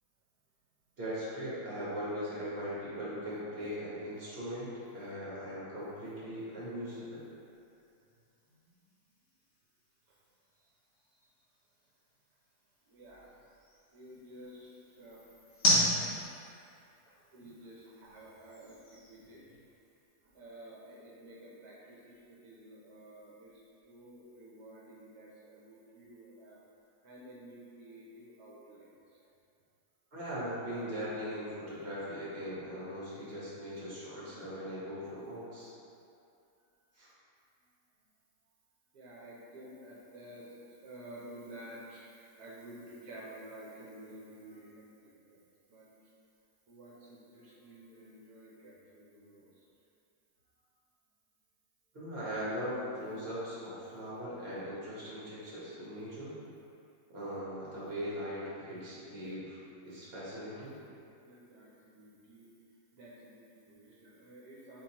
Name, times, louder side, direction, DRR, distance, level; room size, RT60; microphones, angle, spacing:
voice 1, 1.0-7.2 30.1-35.7 36.9-37.1 51.9-56.4 57.1-59.6 59.8-60.8, equal, 40° right, -9 dB, 1.3 m, -39 dB
sound 1, 5.8-20.1, equal, 50° left, 1.3 m, -38 dB
voice 2, 12.9-13.3 13.9-15.2 17.1-19.6 20.3-26.6 27.0-28.9 38.9-44.9 45.2-45.4 45.7-45.9 46.7-49.5 60.5-60.7 61.2-62.5 62.9-64.8, right 1 dB, 70° right, -5 dB, 1.2 m, -51 dB
4.5 x 3.8 x 2.9 m, 2.5 s
omnidirectional pair, 1.7 m